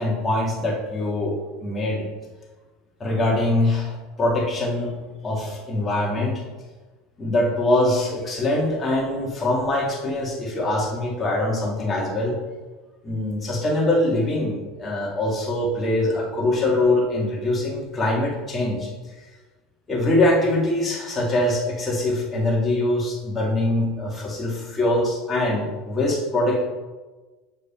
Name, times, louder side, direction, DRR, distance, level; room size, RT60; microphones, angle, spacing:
voice 1, 0.0-2.1 3.0-4.9 5.2-6.4 7.2-12.4 13.0-18.9 19.9-26.6, left 1 dB, 20° left, -3 dB, 2.0 m, -23 dB
7.2 x 4.9 x 4.3 m, 1.2 s
supercardioid pair, 130°, 0 cm